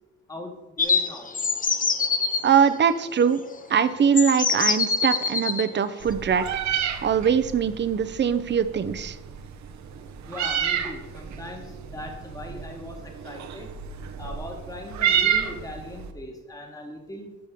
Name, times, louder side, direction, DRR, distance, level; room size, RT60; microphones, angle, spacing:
voice 1, 0.3-1.3 10.2-13.7 14.2-17.3, left 1 dB, 10° left, 2 dB, 1.4 m, -39 dB
sound 1, 0.8-2.4 3.5-3.6 4.2-5.7, left 4 dB, 30° left, 0.7 m, -24 dB
voice 2, 2.4-3.4 3.7-6.5 7.0-9.2, right 7 dB, 35° right, 12 dB, 0.6 m, -22 dB
Meow, 6.0-16.1, right 8 dB, 65° right, 0.9 m, -30 dB
13.0 x 5.4 x 3.6 m, 1.0 s
cardioid pair, 90°, 30 cm